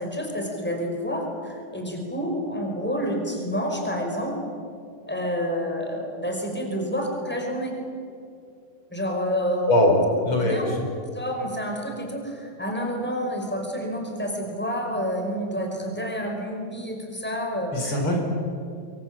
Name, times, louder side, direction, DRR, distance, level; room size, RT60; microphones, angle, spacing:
voice 1, 0.0-4.4 5.1-7.7 8.9-10.0 10.4-10.6 11.1-18.0, equal, 5° left, 1 dB, 5.0 m, -29 dB
voice 2, 10.3-10.8 17.7-18.2, left 1 dB, 85° left, 1 dB, 6.0 m, -21 dB
25.5 x 23.5 x 8.9 m, 2.5 s
omnidirectional pair, 2.3 m